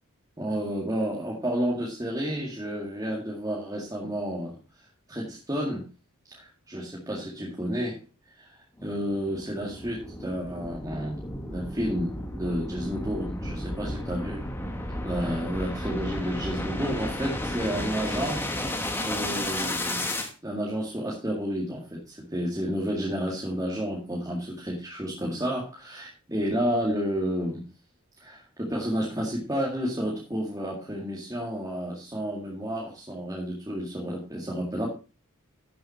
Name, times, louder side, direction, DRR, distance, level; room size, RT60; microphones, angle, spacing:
voice 1, 0.4-4.6 5.1-5.9 6.3-8.0 8.3-14.5 15.0-20.0 20.4-27.7 28.2-34.9, equal, 15° right, -3 dB, 2.0 m, -31 dB
sound 1, 8.8-20.3, left 1 dB, 10° left, 1.3 m, -33 dB
11.5 x 7.5 x 4.3 m, 0.32 s
head